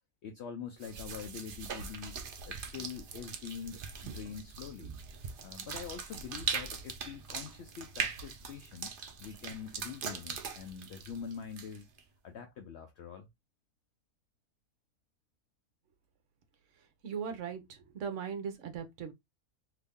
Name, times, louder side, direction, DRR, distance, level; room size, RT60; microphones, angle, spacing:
voice 1, 0.2-2.2 2.5-4.9 5.4-11.9 12.2-13.3, left 7 dB, 70° left, 0.6 m, -44 dB
sound 1, 0.8-12.0, right 6 dB, 80° right, 0.4 m, -41 dB
voice 2, 17.0-19.1, right 6 dB, 60° right, 1.0 m, -39 dB
2.9 x 2.6 x 3.5 m
omnidirectional pair, 1.6 m